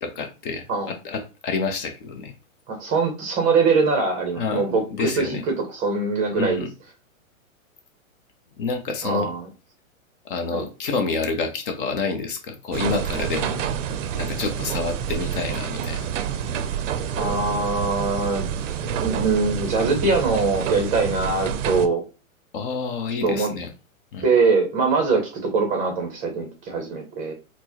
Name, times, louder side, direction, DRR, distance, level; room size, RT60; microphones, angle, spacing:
voice 1, 0.0-2.3 4.4-4.6 4.9-5.4 6.3-6.7 8.6-9.3 10.2-13.6 14.1-16.1 22.5-23.7 24.1-24.2, left 4 dB, 40° left, 0.6 m, -28 dB
voice 2, 2.7-5.4 5.7-6.6 9.0-9.5 10.5-10.7 17.2-18.5 18.8-22.0 23.2-23.5 24.2-27.3, right 4 dB, 20° right, 0.6 m, -22 dB
sound 1, 12.7-21.9, right 8 dB, 65° right, 0.5 m, -28 dB
4.3 x 2.1 x 2.8 m
hypercardioid pair, 140°, 41 cm